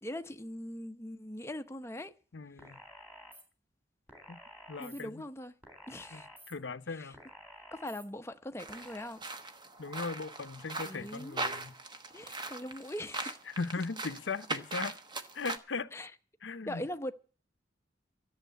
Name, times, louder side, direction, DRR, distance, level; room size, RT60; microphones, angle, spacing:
voice 1, 0.0-2.1 4.8-5.5 5.9-6.3 6.9-7.1 7.7-9.2 10.8-11.6 12.1-13.4 15.9-16.1 16.7-17.1, left 1 dB, 15° left, 0.8 m, -41 dB
voice 2, 2.3-2.8 4.3-4.4 4.7-5.2 6.1-7.2 9.8-11.7 13.6-15.0 15.3-15.9 16.4-16.8, left 4 dB, 85° left, 0.8 m, -38 dB
sound 1, 2.6-3.4 4.1-5.0 5.6-6.5 7.1-8.0 8.7-9.1, equal, 10° right, 3.6 m, -52 dB
sound 2, 8.6-15.6, right 2 dB, 25° right, 1.0 m, -40 dB
13.5 x 7.4 x 9.2 m
head